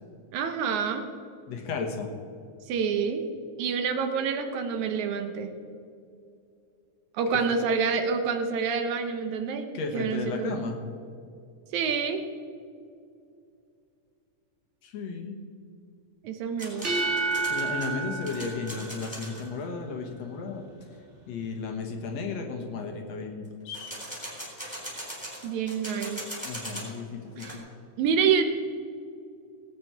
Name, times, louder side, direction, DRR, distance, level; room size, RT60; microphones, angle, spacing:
voice 1, 0.3-1.1 2.7-3.2 3.6-5.5 7.1-10.6 11.7-12.2 16.2-16.9 25.4-26.2 27.4-27.6 28.0-28.4, right 6 dB, 75° right, 7 dB, 2.2 m, -27 dB
voice 2, 1.5-2.1 9.7-10.8 14.8-15.4 17.5-20.7 21.3-23.9 26.4-27.6, left 4 dB, 65° left, 3 dB, 2.3 m, -34 dB
sound 1, 16.6-19.5 23.7-27.0 27.2-27.6, equal, ahead, 3.5 m, -40 dB
sound 2, 16.7-19.5, right 4 dB, 35° right, 1.3 m, -30 dB
18.5 x 8.7 x 4.6 m, 2.5 s
omnidirectional pair, 3.5 m